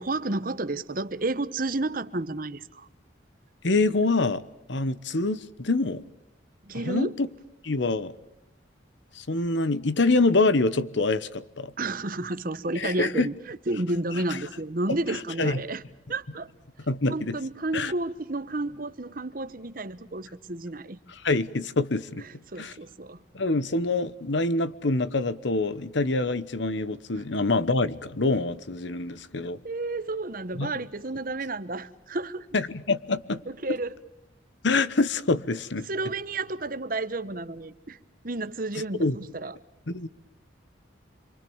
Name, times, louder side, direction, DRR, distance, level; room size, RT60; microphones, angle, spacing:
voice 1, 0.0-2.9 6.7-7.1 11.8-15.8 16.1-16.5 17.1-21.0 22.5-23.2 29.6-32.5 33.5-33.9 35.8-38.0 38.2-39.6, right 2 dB, 45° right, 1.0 m, -31 dB
voice 2, 3.6-4.4 4.7-6.0 6.8-7.3 7.6-8.1 9.1-11.7 12.8-13.3 15.1-15.6 16.9-17.4 17.7-17.9 21.2-22.2 22.6-22.7 23.3-29.6 30.5-30.7 32.5-33.4 34.6-35.9 39.0-39.2 39.9-40.1, left 3 dB, 65° left, 1.1 m, -25 dB
27.5 x 24.0 x 7.2 m
head